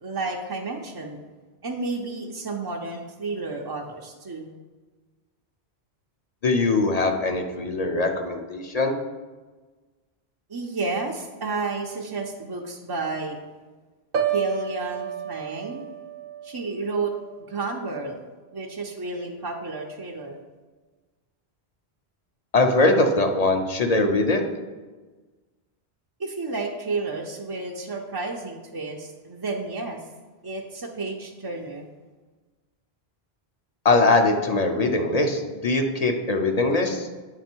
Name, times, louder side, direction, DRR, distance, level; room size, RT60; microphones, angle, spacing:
voice 1, 0.0-1.2 1.6-4.5 10.5-13.4 14.3-15.9 16.4-17.1 17.5-18.2 18.5-20.4 26.2-30.1 30.4-31.9, right 3 dB, 35° right, 0 dB, 0.4 m, -31 dB
voice 2, 6.4-9.0 22.5-24.4 33.8-37.1, left 2 dB, 45° left, 4 dB, 0.6 m, -21 dB
Piano, 14.1-18.1 18.5-18.9, right 8 dB, 65° right, 0.8 m, -32 dB
8.8 x 3.3 x 4.4 m, 1.3 s
omnidirectional pair, 1.1 m